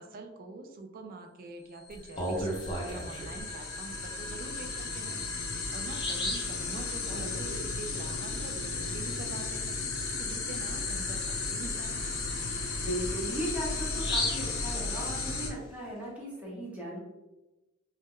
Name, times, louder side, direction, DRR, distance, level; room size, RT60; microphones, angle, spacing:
voice 1, 0.0-12.0, right 3 dB, 45° right, 4 dB, 0.3 m, -45 dB
sound 1, 1.9-15.5, left 3 dB, 70° left, 0.6 m, -34 dB
Bird vocalization bird call bird song, 1.9-3.4 4.9-5.0 5.4-5.5 5.9-6.6 10.0-10.2 10.6-10.7 11.2-15.4, left 1 dB, 25° left, 0.6 m, -36 dB
voice 2, 7.1-7.7 12.7-17.0, equal, 5° right, -6 dB, 0.8 m, -37 dB
2.1 x 2.0 x 3.6 m, 1.0 s
head